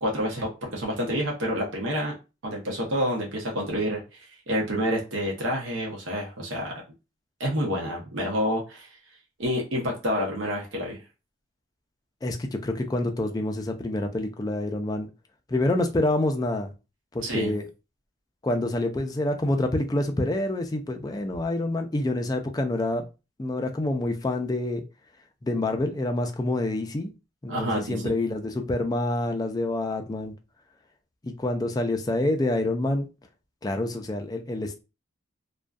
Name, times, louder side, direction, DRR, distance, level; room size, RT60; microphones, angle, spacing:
voice 1, 0.0-2.1 2.4-4.0 4.5-6.7 7.4-8.9 9.4-11.0 17.2-17.5 27.5-28.1, equal, 90° right, -2 dB, 0.7 m, -28 dB
voice 2, 12.2-15.1 15.5-16.7 17.1-17.7 18.4-23.0 23.4-24.8 25.4-27.1 27.4-30.3 31.2-33.1 33.6-34.8, left 1 dB, 20° left, 4 dB, 0.3 m, -27 dB
2.5 x 2.2 x 2.3 m, 0.29 s
head